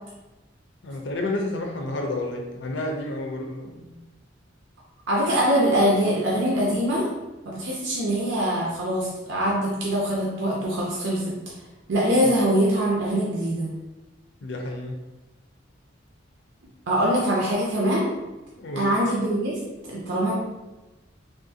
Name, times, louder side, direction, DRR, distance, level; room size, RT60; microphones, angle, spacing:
voice 1, 0.8-3.9 12.2-12.3 14.4-15.0 18.6-18.9, left 2 dB, 65° left, 1 dB, 0.6 m, -30 dB
voice 2, 5.1-7.1 7.5-11.4 11.9-13.7 16.9-18.0 18.8-19.5 19.9-20.3, equal, 70° right, -5 dB, 0.6 m, -23 dB
3.5 x 2.5 x 2.7 m, 1.1 s
head